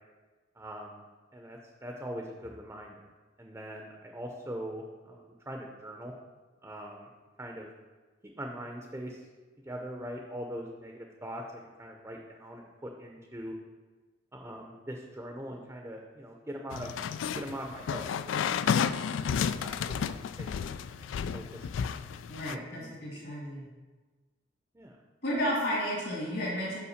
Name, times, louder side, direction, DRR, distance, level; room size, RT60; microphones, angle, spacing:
voice 1, 0.6-1.0 1.3-3.1 3.4-6.1 6.6-7.1 7.4-7.7 8.4-9.3 9.6-13.5 14.3-16.9 17.3-18.5 18.9-19.3 19.6-21.1 21.3-22.1 22.5-23.3 24.7-25.0, equal, 15° right, 1 dB, 0.6 m, -42 dB
sound 1, 16.7-22.6, left 7 dB, 80° left, 0.3 m, -32 dB
voice 2, 22.3-23.6 25.2-26.8, equal, 60° left, -7 dB, 2.1 m, -32 dB
5.7 x 4.9 x 6.4 m, 1.3 s
head